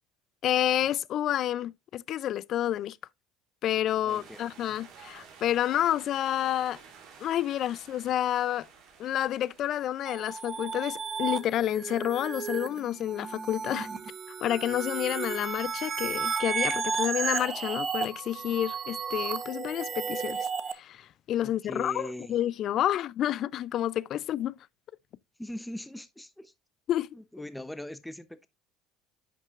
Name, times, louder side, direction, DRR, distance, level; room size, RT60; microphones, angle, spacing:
voice 1, 0.4-3.0 3.6-6.8 7.2-8.7 9.0-13.9 14.4-20.5 20.7-24.6 26.9-27.1, left 12 dB, 50° left, 0.3 m, -29 dB
voice 2, 4.0-4.8 21.4-22.4 25.4-26.5 27.1-28.5, equal, 5° left, 0.7 m, -41 dB
sound 1, 4.1-11.3, right 6 dB, 65° right, 3.0 m, -53 dB
sound 2, 10.1-20.7, right 6 dB, 30° right, 0.9 m, -33 dB
10.5 x 6.0 x 2.4 m
cardioid pair, 135°, 0 cm